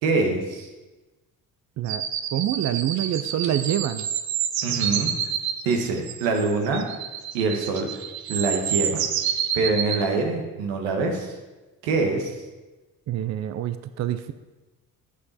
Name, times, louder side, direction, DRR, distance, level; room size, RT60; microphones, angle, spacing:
voice 1, 0.0-0.7 4.6-5.1 5.6-6.8 7.3-7.9 8.3-9.0 9.5-11.3 11.8-12.3, right 3 dB, 90° right, 3 dB, 1.4 m, -24 dB
sound 1, 1.9-10.0, right 9 dB, 70° right, 0.9 m, -28 dB
voice 2, 2.3-4.1 13.1-14.3, right 11 dB, 45° right, 11 dB, 0.5 m, -26 dB
8.3 x 7.7 x 4.2 m, 1.2 s
supercardioid pair, 70°, 38 cm